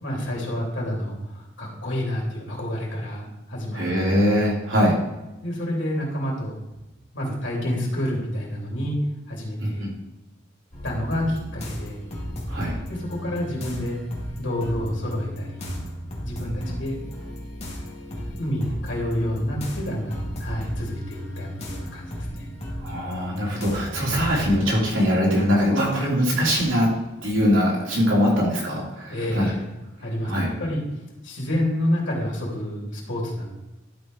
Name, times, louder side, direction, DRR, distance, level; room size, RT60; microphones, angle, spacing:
voice 1, 0.0-4.1 5.4-6.6 7.1-9.0 9.3-9.8 10.8-12.0 12.9-14.0 14.4-15.7 16.2-17.0 18.0-22.5 29.1-29.6 30.0-30.8 31.2-33.4, equal, 70° left, -3 dB, 3.2 m, -29 dB
voice 2, 3.7-4.9 9.6-9.9 12.5-12.8 16.4-16.8 22.8-26.9 27.2-29.5 30.2-30.5, equal, 90° right, -4 dB, 3.4 m, -22 dB
sound 1, 10.7-24.8, equal, 35° left, 2.2 m, -35 dB
11.5 x 4.9 x 4.7 m, 1.0 s
head